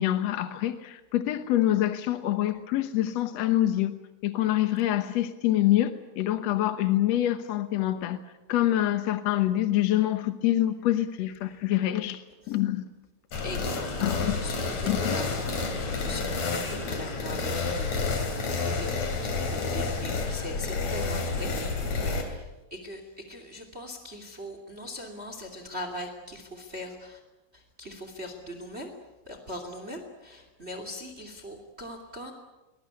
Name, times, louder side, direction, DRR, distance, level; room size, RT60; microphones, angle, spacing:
voice 1, 0.0-4.0 4.2-8.2 8.5-12.9 14.0-14.5 14.9-15.2, left 13 dB, 70° left, 9 dB, 1.7 m, -26 dB
sound 1, 13.3-22.2, left 4 dB, 50° left, 4.3 m, -30 dB
voice 2, 13.4-21.5 22.1-27.2 27.5-28.9 29.2-32.3, left 1 dB, 20° right, 6 dB, 2.5 m, -41 dB
22.5 x 20.5 x 9.7 m, 1.1 s
omnidirectional pair, 4.3 m